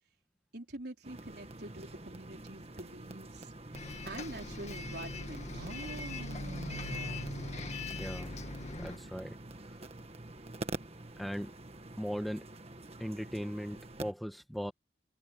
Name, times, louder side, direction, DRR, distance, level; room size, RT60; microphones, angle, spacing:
voice 1, 0.5-3.5 4.0-5.7, right 1 dB, 60° right, 4.4 m, -46 dB
sound 1, 1.0-14.1, right 2 dB, 35° right, 1.6 m, -47 dB
Bus, 3.7-9.0, left 2 dB, 40° left, 2.1 m, -41 dB
sound 2, 5.5-8.6, right 2 dB, 85° right, 1.2 m, -45 dB
voice 2, 8.0-8.4 8.8-9.4 11.2-11.6 12.0-12.5 13.0-14.7, equal, ahead, 1.5 m, -38 dB
head